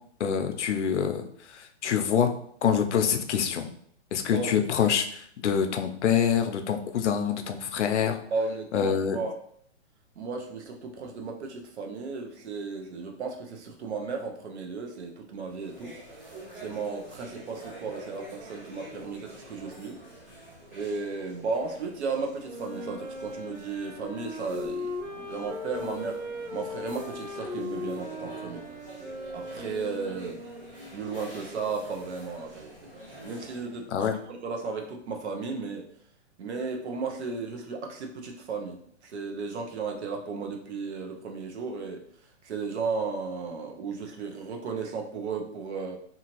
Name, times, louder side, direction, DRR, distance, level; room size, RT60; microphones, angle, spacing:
voice 1, 0.2-1.2 1.5-2.3 2.6-3.7 4.1-8.2 8.7-9.2 33.9-34.1, left 8 dB, 75° left, 6 dB, 0.5 m, -26 dB
voice 2, 8.3-9.3 10.2-20.0 20.7-24.9 25.2-28.6 29.3-30.4 30.9-32.7 33.2-35.9 36.4-42.0 42.4-46.0, right 4 dB, 65° right, 3 dB, 0.7 m, -34 dB
sound 1, 15.4-33.8, right 1 dB, 20° right, 1.5 m, -48 dB
Wind instrument woodwind instrument, 22.4-30.8, left 2 dB, 85° right, 1.2 m, -38 dB
2.9 x 2.4 x 2.9 m, 0.65 s
hypercardioid pair, 170°, 36 cm